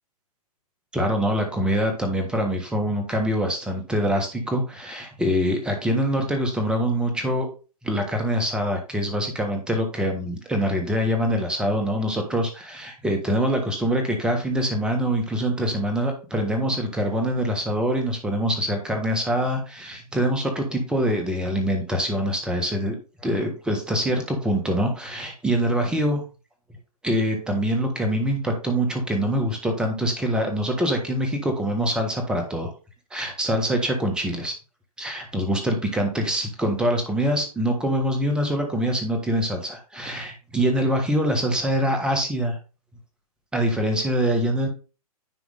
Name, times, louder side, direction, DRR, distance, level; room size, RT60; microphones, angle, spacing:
voice 1, 0.9-7.5 7.8-23.0 23.2-26.2 27.0-32.7 33.1-34.5 35.0-42.6 43.5-44.7, equal, 5° right, 3 dB, 1.4 m, -24 dB
10.0 x 3.5 x 3.8 m, 0.34 s
hypercardioid pair, 135°, 19 cm